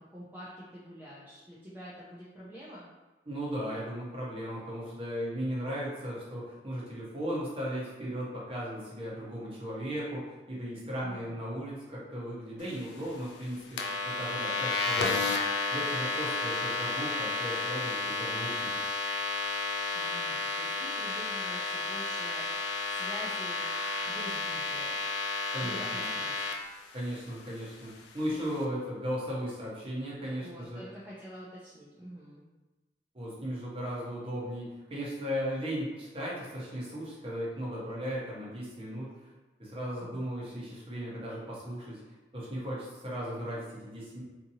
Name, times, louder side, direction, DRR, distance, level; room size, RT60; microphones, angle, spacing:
voice 1, 0.0-2.9 11.0-11.4 19.9-23.7 24.0-25.0 25.6-26.4 28.3-28.6 30.2-32.4, equal, 10° right, -8 dB, 0.4 m, -47 dB
voice 2, 3.3-15.4 15.7-18.7 25.5-26.1 26.9-30.8 33.1-39.1 39.6-42.0 42.3-44.2, equal, 30° right, -6 dB, 0.8 m, -36 dB
sound 1, 13.8-26.5, left 3 dB, 80° left, 0.4 m, -32 dB
2.7 x 2.5 x 2.7 m, 1.2 s
head